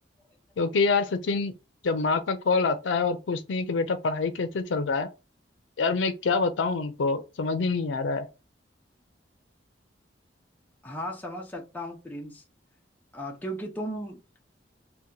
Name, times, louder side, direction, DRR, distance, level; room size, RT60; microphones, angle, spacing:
voice 1, 0.6-1.5 1.8-5.1 5.8-8.3, left 4 dB, 80° left, 0.5 m, -26 dB
voice 2, 10.8-12.4 13.1-14.2, equal, 10° left, 0.5 m, -36 dB
2.8 x 2.2 x 3.7 m
head